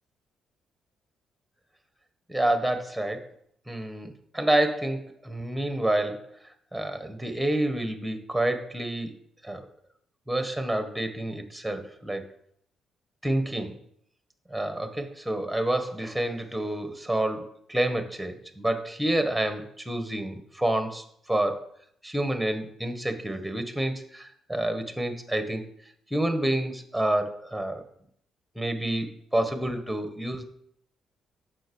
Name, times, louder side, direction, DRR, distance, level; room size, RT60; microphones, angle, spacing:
voice 1, 2.3-3.3 3.7-9.1 9.4-9.7 10.3-12.3 13.2-13.7 14.5-21.6 22.0-25.6 26.1-27.8 28.5-30.4, right 1 dB, ahead, 7 dB, 1.5 m, -28 dB
7.6 x 6.3 x 7.1 m, 0.69 s
cardioid pair, 90°, 0 cm